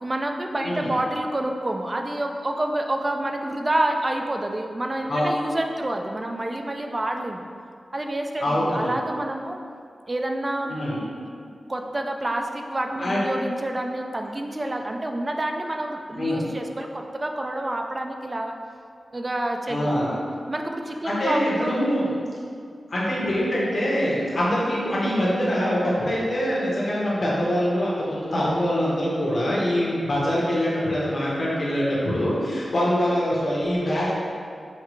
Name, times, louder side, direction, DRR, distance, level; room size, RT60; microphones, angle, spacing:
voice 1, 0.0-7.4 7.9-9.6 10.1-10.8 11.7-18.5 19.1-20.0 20.5-21.7, right 1 dB, 30° right, 3 dB, 0.3 m, -28 dB
voice 2, 0.6-0.9 5.1-5.3 8.4-9.0 10.7-11.0 13.0-13.2 16.1-16.4 19.7-20.1 21.0-22.1 22.9-34.1, equal, 60° left, -7 dB, 1.2 m, -24 dB
5.6 x 2.3 x 3.1 m, 2.3 s
wide cardioid pair, 75°, 0 cm